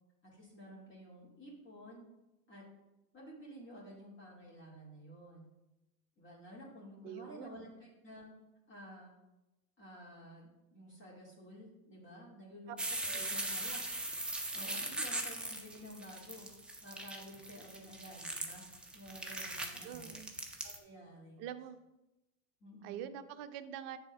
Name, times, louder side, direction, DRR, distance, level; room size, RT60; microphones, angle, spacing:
voice 1, 0.2-2.0 2.5-2.6 3.1-5.5 6.2-8.3 8.7-9.1 9.8-13.8 14.5-16.5 16.8-18.6 18.9-20.1 20.6-21.4 22.6-23.1, equal, 25° left, -5 dB, 2.2 m, -52 dB
voice 2, 7.0-7.7 12.7-12.8 13.1-13.4 19.8-20.3 21.4-21.8 22.8-24.0, right 10 dB, 45° right, 10 dB, 0.6 m, -45 dB
sound 1, 12.8-20.8, right 2 dB, ahead, 0.3 m, -40 dB
7.5 x 3.5 x 5.8 m, 0.99 s
hypercardioid pair, 105°, 47 cm